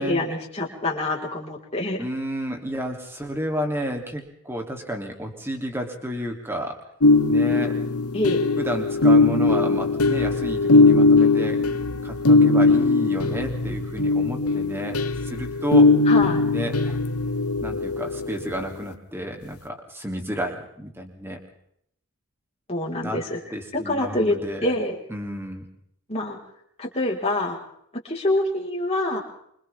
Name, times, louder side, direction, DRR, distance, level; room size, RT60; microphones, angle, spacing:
voice 1, 0.0-2.0 8.1-8.5 16.1-16.4 22.7-23.4 23.7-25.0 26.1-26.4 26.8-27.6 28.0-29.2, left 1 dB, 30° left, -2 dB, 4.7 m, -26 dB
voice 2, 2.0-6.8 7.3-7.8 8.6-11.6 12.0-15.9 16.4-17.0 17.6-21.4 23.0-23.2 23.5-24.7 25.1-25.6, equal, 10° right, 2 dB, 3.1 m, -31 dB
sound 1, 7.0-18.6, left 3 dB, 90° left, 1.3 m, -19 dB
28.0 x 26.0 x 3.7 m, 0.72 s
head